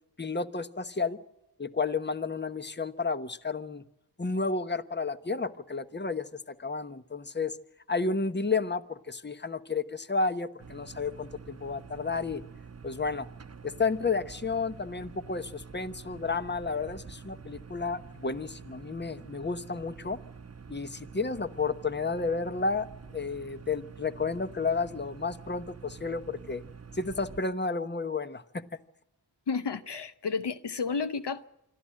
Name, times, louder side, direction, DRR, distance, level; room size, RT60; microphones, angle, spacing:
voice 1, 0.2-1.2 1.6-3.8 4.2-7.6 7.9-12.4 12.8-13.3 13.6-20.2 20.7-22.9 23.1-26.6 26.9-28.4, left 4 dB, 25° left, 1.1 m, -31 dB
sound 1, 10.6-27.4, right 5 dB, 40° right, 0.9 m, -47 dB
voice 2, 29.5-31.5, left 5 dB, 75° left, 0.9 m, -31 dB
26.0 x 13.0 x 7.6 m
cardioid pair, 45°, 41 cm